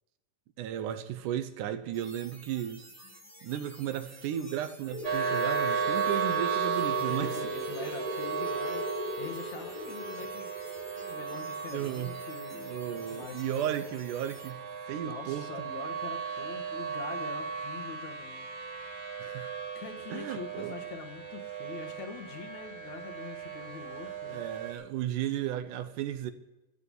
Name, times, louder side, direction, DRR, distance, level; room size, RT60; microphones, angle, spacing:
voice 1, 0.6-2.8 3.4-7.3 11.7-12.1 12.6-14.6 14.9-15.5 19.2-19.5 20.1-20.7 24.0-26.3, right 11 dB, 75° right, 2.3 m, -34 dB
sound 1, 1.9-14.5, right 1 dB, 10° right, 0.9 m, -52 dB
sound 2, 4.9-13.2, left 1 dB, 90° left, 5.3 m, -39 dB
sound 3, 5.0-24.7, right 7 dB, 50° right, 2.6 m, -36 dB
voice 2, 7.0-10.5 11.1-13.9 15.0-19.0 19.7-24.4, left 6 dB, 65° left, 2.6 m, -44 dB
13.5 x 8.2 x 8.2 m
omnidirectional pair, 3.7 m